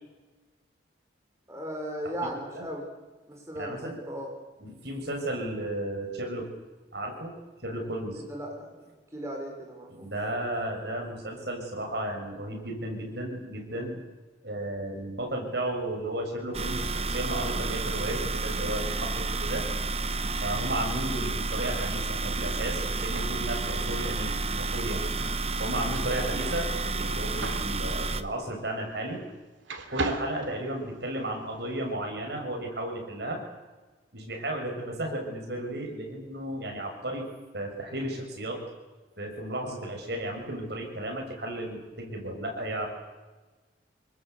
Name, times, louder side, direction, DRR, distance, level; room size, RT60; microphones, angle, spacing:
voice 1, 1.5-2.9 3.3-4.3 8.1-10.1 26.2-26.5, equal, 15° right, -1 dB, 4.6 m, -37 dB
voice 2, 3.5-4.0 4.6-6.5 6.9-7.3 7.6-8.2 9.9-14.0 14.4-19.6 20.4-25.0 25.6-29.2 29.9-33.4 34.1-37.3 37.5-38.6 39.2-42.9, right 1 dB, 60° right, 1 dB, 6.7 m, -34 dB
sound 1, 16.5-28.2, right 3 dB, 30° right, 0.9 m, -30 dB
sound 2, 21.6-29.4 29.6-31.3, right 3 dB, 85° right, 2.6 m, -40 dB
26.5 x 21.0 x 8.3 m, 1.3 s
head